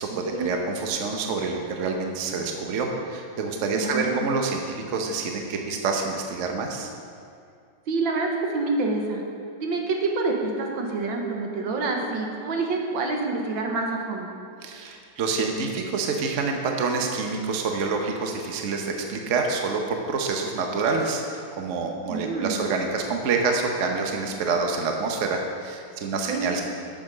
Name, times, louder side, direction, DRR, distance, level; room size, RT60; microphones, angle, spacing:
voice 1, 0.0-4.6 4.9-6.9 14.6-19.8 20.1-26.6, right 4 dB, 50° right, 2 dB, 1.0 m, -27 dB
voice 2, 3.7-4.3 7.9-9.2 9.6-14.3 22.1-22.6 26.3-26.5, right 3 dB, 80° right, 1 dB, 1.8 m, -27 dB
8.8 x 6.2 x 6.3 m, 2.3 s
omnidirectional pair, 2.1 m